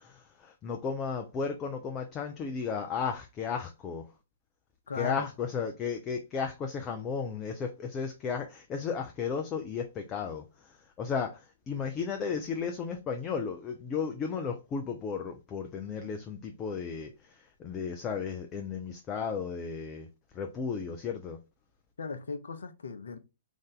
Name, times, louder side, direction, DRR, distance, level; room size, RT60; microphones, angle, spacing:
voice 1, 0.0-4.1 5.0-20.1 20.3-21.4, left 6 dB, 20° left, 0.5 m, -34 dB
voice 2, 4.9-5.3 22.0-23.2, left 4 dB, 60° left, 0.6 m, -37 dB
3.6 x 2.6 x 3.6 m
figure-of-eight pair, 115°, 0 cm